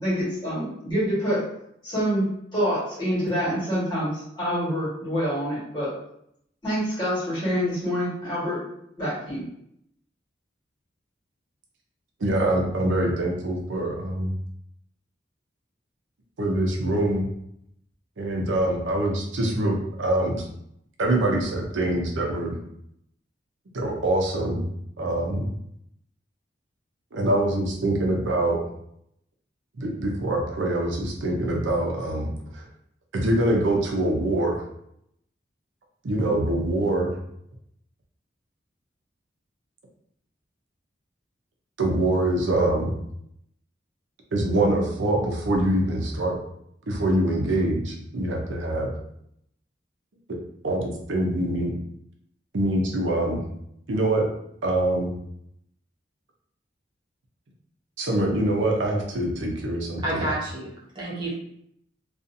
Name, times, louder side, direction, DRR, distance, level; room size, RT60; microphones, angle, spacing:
voice 1, 0.0-1.4 1.8-5.9 6.6-8.6 9.0-9.4, equal, 25° left, -9 dB, 1.4 m, -26 dB
voice 2, 12.2-14.3 16.4-17.3 18.2-20.4 21.0-22.5 23.7-24.6 25.0-25.5 27.1-28.6 29.8-32.3 33.1-34.6 36.0-37.1 41.8-43.0 44.3-46.4 46.9-48.9 50.6-51.7 52.5-53.4 53.9-54.3 54.6-55.1 58.0-60.3, right 1 dB, 90° right, 0 dB, 0.6 m, -24 dB
voice 3, 60.0-61.3, right 1 dB, 25° right, -7 dB, 0.7 m, -30 dB
2.6 x 2.4 x 2.6 m, 0.74 s
head